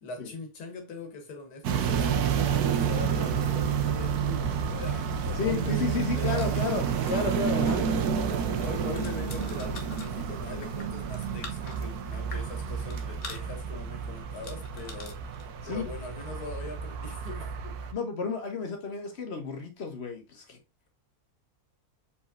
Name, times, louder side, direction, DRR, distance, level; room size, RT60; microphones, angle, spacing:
voice 1, 0.0-6.7 8.6-15.2 15.7-17.8, left 3 dB, 90° left, 1.6 m, -42 dB
sound 1, 1.6-17.9, right 7 dB, 90° right, 1.2 m, -30 dB
voice 2, 5.3-7.9 15.6-15.9 17.9-20.6, left 4 dB, 45° left, 1.3 m, -32 dB
sound 2, 6.3-15.5, left 4 dB, 70° left, 1.5 m, -48 dB
4.6 x 4.1 x 2.5 m
omnidirectional pair, 1.6 m